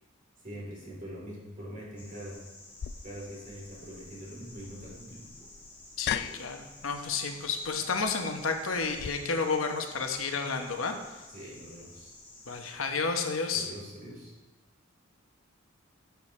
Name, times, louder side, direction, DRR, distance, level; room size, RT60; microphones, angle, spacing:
voice 1, 0.4-2.4 3.0-5.3 11.3-12.1 13.5-14.3, equal, 40° right, -5 dB, 3.6 m, -43 dB
nibble bubbler, 2.0-12.7, left 2 dB, 10° left, 1.7 m, -52 dB
sound 1, 2.8-9.1, left 9 dB, 50° left, 0.3 m, -40 dB
voice 2, 6.0-11.2 12.5-13.7, left 4 dB, 75° left, 5 dB, 1.0 m, -31 dB
12.5 x 6.9 x 3.3 m, 1.1 s
head